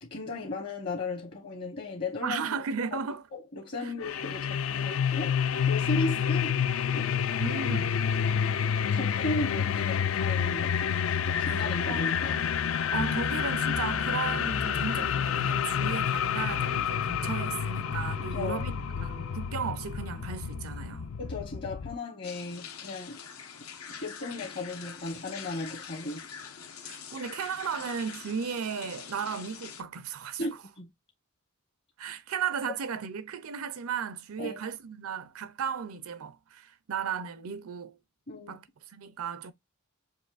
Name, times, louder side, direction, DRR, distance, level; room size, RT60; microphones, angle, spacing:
voice 1, 0.0-2.5 2.9-3.0 3.3-5.4 5.7-6.5 6.9-7.6 8.9-11.0 11.3-12.5 18.3-18.6 21.2-23.2 23.9-26.2 30.4-30.9 34.4-34.6 38.3-38.6, left 2 dB, 50° left, 1.1 m, -36 dB
voice 2, 2.2-3.2 3.8-3.9 5.9-6.2 7.4-8.1 11.5-12.2 12.9-21.1 26.8-30.4 32.0-38.0 38.5-39.5, right 6 dB, 80° right, 0.6 m, -35 dB
sound 1, 4.0-22.0, left 7 dB, 65° left, 0.4 m, -29 dB
sound 2, 13.0-19.4, right 4 dB, 25° right, 0.3 m, -46 dB
sound 3, 22.2-29.8, left 7 dB, 85° left, 1.1 m, -44 dB
6.4 x 2.6 x 2.4 m
head